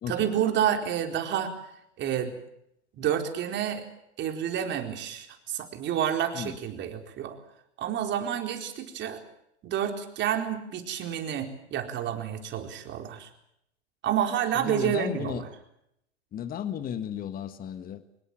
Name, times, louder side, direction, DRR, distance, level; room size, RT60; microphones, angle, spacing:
voice 1, 0.1-1.5 2.0-2.3 3.0-3.9 4.2-7.4 7.8-9.2 9.6-13.3 14.0-15.5, right 9 dB, 30° right, 5 dB, 4.3 m, -29 dB
voice 2, 14.5-15.4 16.3-18.0, left 9 dB, 25° left, 12 dB, 1.6 m, -34 dB
24.5 x 21.5 x 7.6 m, 0.77 s
hypercardioid pair, 105°, 34 cm